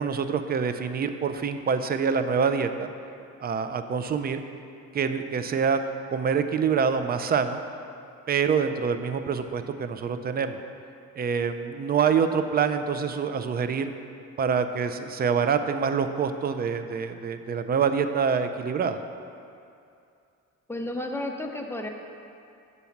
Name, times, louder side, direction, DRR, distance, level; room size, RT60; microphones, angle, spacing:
voice 1, 0.0-2.9 3.4-4.4 4.9-5.8 6.1-7.6 8.3-10.6 11.2-13.9 14.4-19.0, right 6 dB, 30° right, 9 dB, 0.4 m, -26 dB
voice 2, 20.7-21.9, left 1 dB, 10° left, 2 dB, 0.6 m, -32 dB
7.1 x 4.1 x 5.8 m, 2.5 s
cardioid pair, 90°, 30 cm